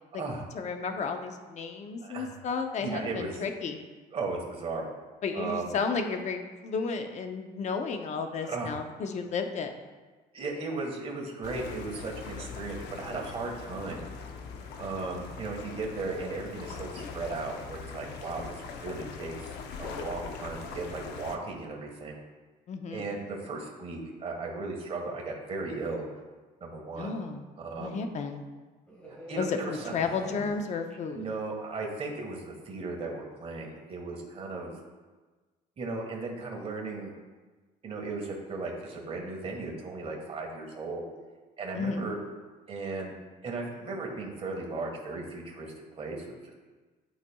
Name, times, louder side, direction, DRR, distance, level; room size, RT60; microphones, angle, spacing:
voice 1, 0.5-3.8 5.2-9.7 22.7-23.1 27.0-27.4 27.8-28.4 29.4-31.2 41.7-42.0, left 5 dB, 45° left, 6 dB, 0.7 m, -33 dB
voice 2, 2.0-2.3 2.8-3.4 4.1-4.9 5.3-5.8 8.5-8.8 10.3-14.1 14.8-19.5 19.8-22.2 22.9-26.1 26.6-27.2 27.6-28.0 29.1-29.9 31.1-34.7 35.8-37.1 37.8-41.0 41.6-42.1 42.7-43.1 43.4-46.5, right 3 dB, 35° right, -1 dB, 1.5 m, -36 dB
sound 1, 11.4-21.4, left 5 dB, 80° left, 0.6 m, -41 dB
sound 2, 28.9-31.6 31.8-32.1, equal, 10° left, 1.6 m, -46 dB
11.0 x 4.1 x 2.3 m, 1.3 s
cardioid pair, 110°, 17 cm